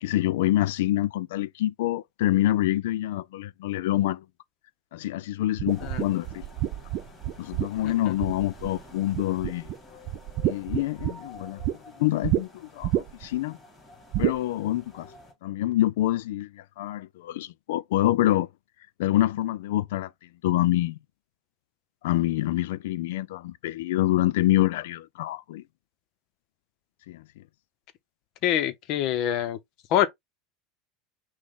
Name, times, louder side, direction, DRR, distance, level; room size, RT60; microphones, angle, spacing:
voice 1, 0.0-4.2 4.9-6.4 7.4-9.7 10.4-11.6 12.0-13.6 14.2-15.1 15.4-18.5 19.0-20.1 20.4-21.0 22.0-25.6 27.1-27.2, left 15 dB, 90° left, 0.3 m, -26 dB
sound 1, 5.6-8.8 9.1-9.8 10.1-11.8 12.2-12.4 12.8-13.3 14.1-14.4, right 14 dB, 50° right, 0.4 m, -28 dB
sound 2, 5.7-15.3, left 2 dB, 15° left, 3.0 m, -50 dB
voice 2, 28.4-29.6 29.9-30.1, left 11 dB, 55° left, 0.7 m, -25 dB
6.1 x 2.2 x 3.7 m
supercardioid pair, 145°, 0 cm